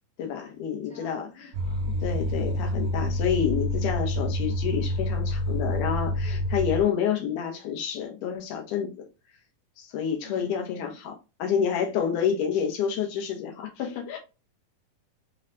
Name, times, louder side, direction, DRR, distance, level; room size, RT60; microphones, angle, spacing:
voice 1, 0.2-1.5 2.0-9.0 9.8-11.1 11.4-14.2, left 8 dB, 80° left, 2.4 m, -29 dB
voice 2, 0.9-1.3 1.6-1.9 10.2-11.0, left 1 dB, 5° left, 1.3 m, -47 dB
sound 1, 1.5-6.8, left 1 dB, 80° right, 2.0 m, -28 dB
5.5 x 3.2 x 2.5 m
omnidirectional pair, 3.6 m